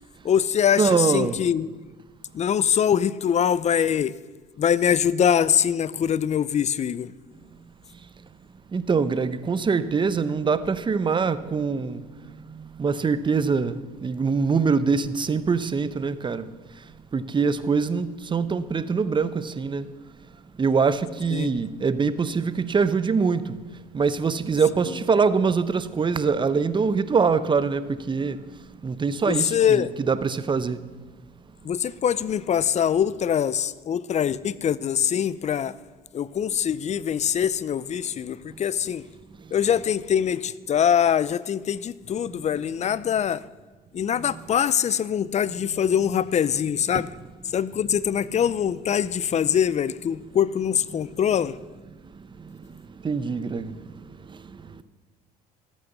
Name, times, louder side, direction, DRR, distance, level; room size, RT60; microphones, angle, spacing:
voice 1, 0.2-1.7 2.3-4.2 4.6-7.1 21.3-21.6 29.3-29.9 31.6-35.8 36.1-39.0 39.5-43.4 43.9-47.1 47.5-51.6, left 8 dB, 35° left, 0.6 m, -23 dB
voice 2, 0.8-1.4 8.7-12.0 12.8-16.4 17.1-19.8 20.6-23.5 23.9-27.8 28.1-28.4 28.8-30.8 53.0-53.7, right 5 dB, 25° right, 0.8 m, -23 dB
13.0 x 8.7 x 6.7 m
supercardioid pair, 80°, 20 cm